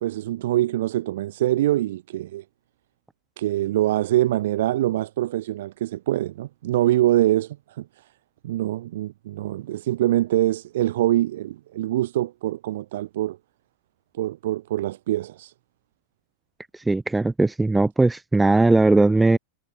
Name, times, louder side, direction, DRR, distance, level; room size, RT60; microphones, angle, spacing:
voice 1, 0.0-2.4 3.4-8.0 8.4-13.4 14.1-15.5, right 14 dB, 55° right, 0.4 m, -24 dB
voice 2, 16.9-19.4, right 2 dB, 5° right, 0.5 m, -19 dB
figure-of-eight pair, 90°, 0 cm